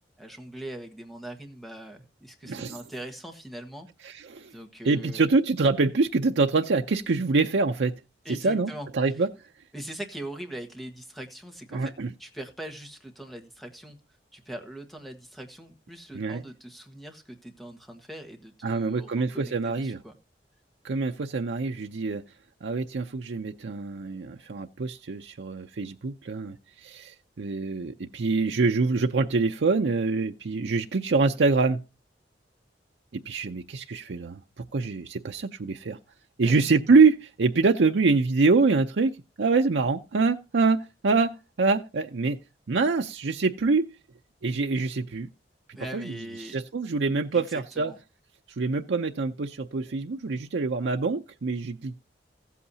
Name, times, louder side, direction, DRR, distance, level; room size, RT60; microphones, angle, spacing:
voice 1, 0.2-4.1 4.5-5.3 8.2-9.2 9.7-11.9 12.2-14.0 14.3-20.1 36.4-36.6 45.7-46.6 47.3-47.5 47.7-48.0, right 1 dB, ahead, 1.4 m, -41 dB
voice 2, 2.4-2.8 4.0-4.5 4.8-7.9 8.4-9.3 11.7-12.1 16.1-16.4 18.6-20.0 20.8-22.2 22.6-31.8 33.3-36.0 36.4-42.4 42.7-43.9 44.4-45.3 45.9-46.2 46.4-47.9 48.6-52.0, right 4 dB, 90° right, 0.6 m, -25 dB
15.5 x 8.4 x 2.7 m
head